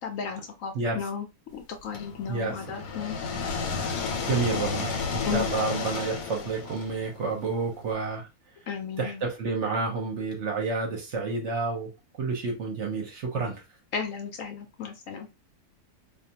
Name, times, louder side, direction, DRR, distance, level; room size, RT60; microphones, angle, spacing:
voice 1, 0.0-1.3 1.5-3.2 5.3-5.5 8.7-9.2 13.9-15.3, left 6 dB, 70° left, 0.9 m, -34 dB
sound 1, 1.9-7.8, left 4 dB, 90° left, 1.2 m, -32 dB
voice 2, 2.2-2.6 4.2-8.3 9.0-11.9 12.2-13.6, right 4 dB, 60° right, 0.8 m, -30 dB
2.5 x 2.3 x 2.7 m
omnidirectional pair, 1.6 m